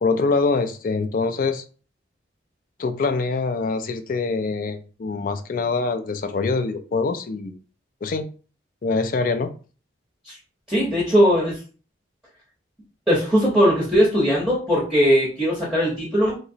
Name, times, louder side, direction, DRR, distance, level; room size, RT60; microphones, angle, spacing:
voice 1, 0.0-1.6 2.8-7.6 8.0-8.3 8.8-9.5, left 4 dB, 45° left, 8 dB, 0.3 m, -24 dB
voice 2, 10.7-11.6 13.1-16.4, equal, 5° right, -6 dB, 0.7 m, -19 dB
2.9 x 2.9 x 2.7 m, 0.38 s
head